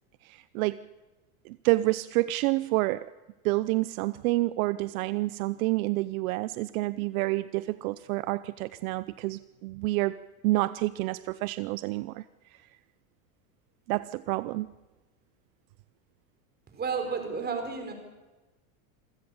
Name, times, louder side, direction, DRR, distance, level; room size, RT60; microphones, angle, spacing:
voice 1, 0.2-0.9 1.4-3.0 3.4-10.2 10.4-12.2 13.9-14.7, right 19 dB, 65° right, 16 dB, 0.7 m, -28 dB
voice 2, 16.7-17.9, right 5 dB, 20° right, 5 dB, 4.7 m, -32 dB
27.0 x 15.5 x 7.2 m, 1.2 s
supercardioid pair, 140°, 45 cm